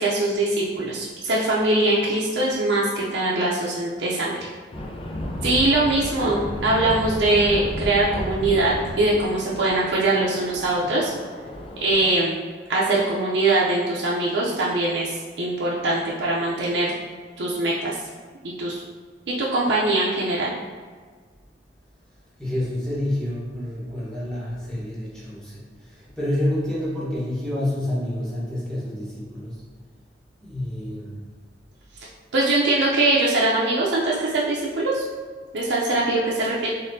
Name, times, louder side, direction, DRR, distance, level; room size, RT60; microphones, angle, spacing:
voice 1, 0.0-4.5 5.4-11.1 11.8-12.4 12.7-16.9 17.4-18.0 18.6-18.8 19.4-20.5 32.3-35.0 35.5-36.7, right 2 dB, 70° right, -5 dB, 0.5 m, -22 dB
sound 1, 4.7-12.1, left 1 dB, 30° left, 0.4 m, -33 dB
voice 2, 22.4-29.6 30.4-31.2, left 1 dB, 5° left, -8 dB, 1.1 m, -28 dB
4.1 x 3.7 x 2.6 m, 1.5 s
head